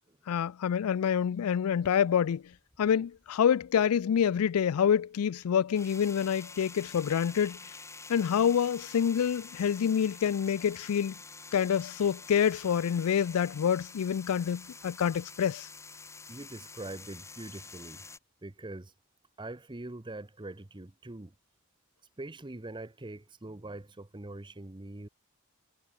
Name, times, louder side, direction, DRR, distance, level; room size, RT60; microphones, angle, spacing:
voice 1, 0.3-2.4 2.8-7.6 8.1-11.1 11.5-15.7, left 8 dB, 80° left, 0.4 m, -27 dB
sound 1, 1.8-3.5 3.8-18.2, left 4 dB, 15° left, 1.2 m, -48 dB
voice 2, 16.3-18.1 18.4-18.9 19.4-21.3 22.2-25.1, right 2 dB, 20° right, 0.8 m, -43 dB
head